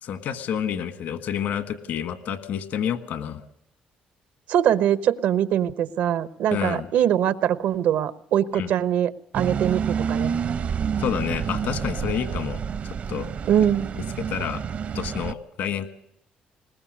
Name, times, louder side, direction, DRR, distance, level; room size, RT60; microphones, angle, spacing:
voice 1, 0.0-3.4 6.5-6.9 8.5-8.7 11.0-13.3 14.2-14.6 14.9-15.9, left 8 dB, 75° left, 10 dB, 1.6 m, -29 dB
voice 2, 4.5-10.3 13.5-13.9, right 10 dB, 80° right, 14 dB, 1.0 m, -22 dB
sound 1, 9.3-15.3, right 7 dB, 55° right, 0.7 m, -28 dB
21.0 x 20.0 x 6.5 m, 0.77 s
cardioid pair, 105°, 3 cm